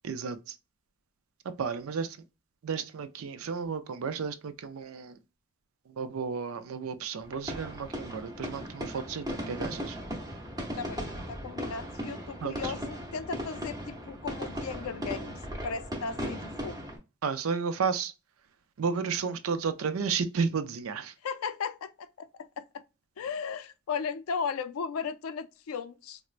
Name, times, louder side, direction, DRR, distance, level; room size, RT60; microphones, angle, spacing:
voice 1, 0.0-0.6 1.4-2.2 2.6-5.2 5.9-10.0 12.4-12.7 17.2-18.1 18.8-21.1, right 5 dB, 85° right, 0.5 m, -32 dB
sound 1, 7.2-17.0, equal, 20° right, 0.8 m, -37 dB
voice 2, 10.8-15.3 15.6-16.8 21.2-22.8 23.2-26.2, left 5 dB, 85° left, 0.4 m, -36 dB
4.3 x 2.0 x 2.4 m
head